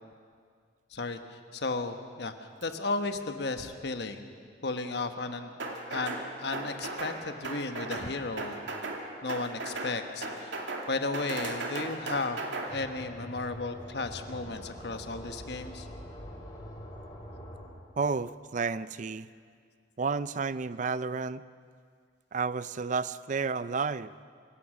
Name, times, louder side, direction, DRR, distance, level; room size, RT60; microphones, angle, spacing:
voice 1, 0.9-4.3 4.6-5.5 5.9-8.6 9.2-10.5 10.9-12.4 12.7-15.9, left 3 dB, 60° left, 7 dB, 1.2 m, -34 dB
sound 1, 5.6-6.2 6.5-7.2 7.4-8.1 8.4-9.0 9.3-9.9 10.2-10.9 11.1-12.7, right 2 dB, 90° right, 2.5 m, -36 dB
sound 2, 12.7-17.7, equal, 20° left, 7.9 m, -44 dB
voice 2, 18.0-19.3 20.0-21.4 22.3-24.2, right 4 dB, 45° right, 16 dB, 0.5 m, -31 dB
26.0 x 16.5 x 6.2 m, 2.1 s
head